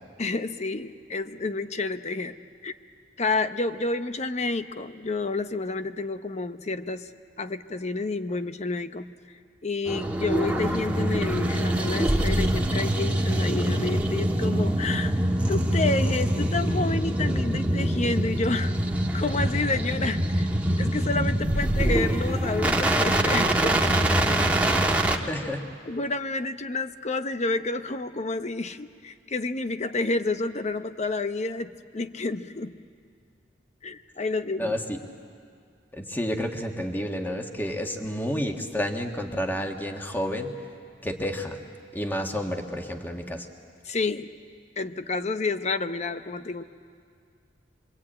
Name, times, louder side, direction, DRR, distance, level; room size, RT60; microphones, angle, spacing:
voice 1, 0.2-2.3 2.6-2.7 3.2-7.1 7.4-9.1 9.6-15.2 15.5-18.7 19.1-20.5 20.8-23.8 25.9-32.7 33.8-34.8 43.8-44.3 44.8-46.6, left 3 dB, 40° left, 10 dB, 0.8 m, -29 dB
sound 1, 9.9-25.2, right 1 dB, 10° right, 1.4 m, -24 dB
voice 2, 25.3-25.6 34.6-35.0 35.9-40.5 41.0-41.6 41.9-43.5, equal, 10° left, 3 dB, 1.5 m, -30 dB
25.5 x 23.0 x 8.8 m, 2.2 s
head